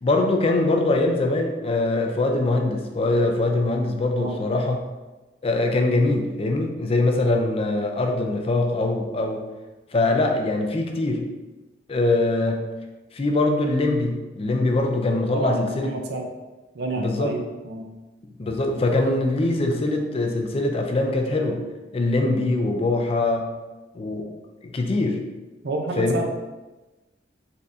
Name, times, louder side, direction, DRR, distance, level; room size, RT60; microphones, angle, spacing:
voice 1, 0.0-4.8 5.4-9.4 9.9-11.3 11.9-12.7 13.1-15.9 17.0-17.3 18.4-21.6 21.9-23.5 23.9-24.3 24.6-25.2 26.0-26.1, left 2 dB, 35° left, 3 dB, 0.4 m, -22 dB
voice 2, 15.3-16.3 16.7-17.9 25.6-26.3, right 2 dB, 65° right, 3 dB, 0.6 m, -29 dB
4.2 x 3.6 x 2.6 m, 1.1 s
head